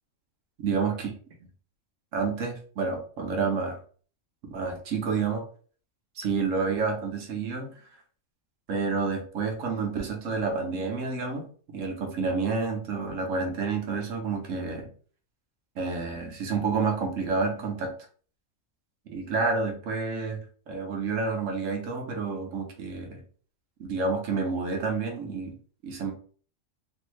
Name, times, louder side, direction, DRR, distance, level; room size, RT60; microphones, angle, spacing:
voice 1, 0.6-1.1 2.1-3.8 4.5-5.4 6.2-7.7 8.7-11.5 11.7-14.9 15.8-17.9 19.1-23.2 23.8-25.5 25.8-26.1, right 4 dB, 75° right, 2 dB, 1.2 m, -29 dB
3.3 x 2.6 x 3.1 m, 0.43 s
omnidirectional pair, 1.4 m